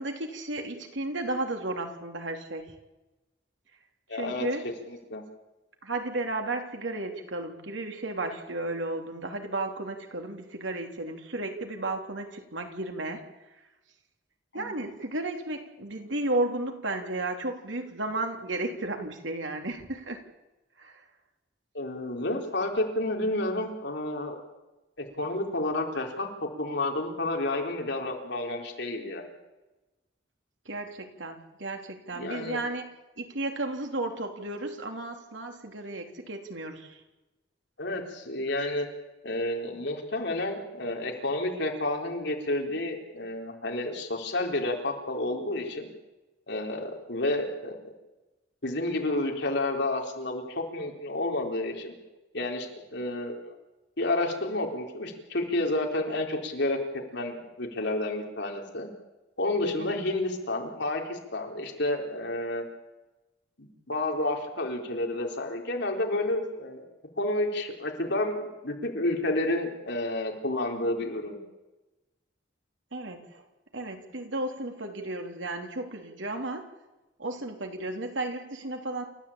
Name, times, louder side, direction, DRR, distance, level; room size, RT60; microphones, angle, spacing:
voice 1, 0.0-2.7 4.1-4.7 5.8-13.2 14.5-20.2 20.8-21.0 30.7-32.8 33.2-37.0 59.8-60.0 72.9-73.4 73.7-76.6 77.2-79.0, right 2 dB, 80° right, 4 dB, 3.5 m, -33 dB
voice 2, 4.1-4.5 4.9-5.2 14.5-14.8 21.7-24.4 25.0-26.3 26.6-29.3 32.1-32.6 37.8-38.9 39.2-45.9 46.5-47.8 48.6-51.9 52.3-53.5 54.0-56.8 57.1-58.9 59.4-62.7 63.6-66.8 67.2-71.4, left 2 dB, 65° left, 2 dB, 4.0 m, -30 dB
28.5 x 14.0 x 8.8 m, 1.1 s
head